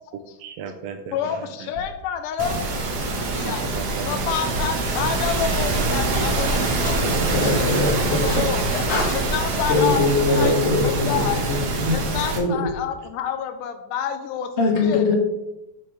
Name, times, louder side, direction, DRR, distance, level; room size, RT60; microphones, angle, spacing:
voice 1, 0.4-1.7 3.4-4.1 4.4-4.5, right 6 dB, 85° right, 5 dB, 1.4 m, -36 dB
voice 2, 1.1-2.6 3.4-3.6 4.0-7.1 7.4-8.8 9.1-10.0 10.3-10.5 10.8-11.5 11.9-14.5 14.8-15.0, left 8 dB, 85° left, 8 dB, 2.3 m, -28 dB
sound 1, 1.7-2.1 3.1-3.5 4.4-4.9 5.8-6.1 7.2-7.5 8.6-8.8 9.9-10.4 11.2-11.7 12.6-13.1, left 3 dB, 55° left, 2.4 m, -39 dB
sound 2, 2.4-12.4, right 3 dB, 60° right, 2.0 m, -24 dB
voice 3, 6.8-8.4 8.9-9.1 9.7-11.3 11.8-12.6 14.6-15.2, left 3 dB, 35° left, -3 dB, 1.2 m, -22 dB
6.4 x 6.3 x 4.9 m, 0.97 s
omnidirectional pair, 3.6 m